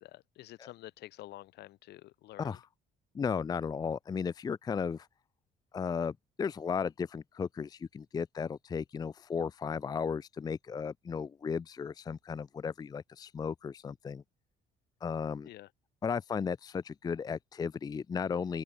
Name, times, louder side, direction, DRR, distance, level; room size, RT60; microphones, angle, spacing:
voice 1, 0.0-2.6 15.4-15.7, left 16 dB, 80° left, 2.6 m, -49 dB
voice 2, 3.1-5.1 5.7-14.2 15.0-15.5 16.0-18.6, left 6 dB, 25° left, 0.4 m, -35 dB
open air
cardioid pair, 110°, 17 cm